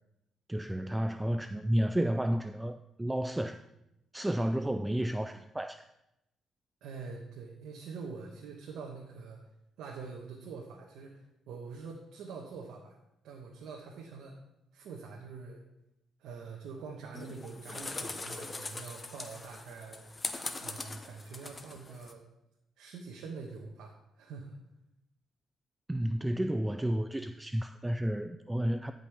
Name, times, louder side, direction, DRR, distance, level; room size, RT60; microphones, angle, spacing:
voice 1, 0.5-3.6 4.1-5.9 25.9-28.9, right 1 dB, 10° right, 0.3 m, -31 dB
voice 2, 6.8-9.4 9.8-13.0 13.2-14.4 14.7-15.6 16.2-20.0 20.6-22.2 22.8-24.6, right 4 dB, 85° right, 1.1 m, -45 dB
sound 1, 17.1-22.1, left 3 dB, 25° left, 0.8 m, -41 dB
14.0 x 5.3 x 3.4 m
cardioid pair, 90°, 0 cm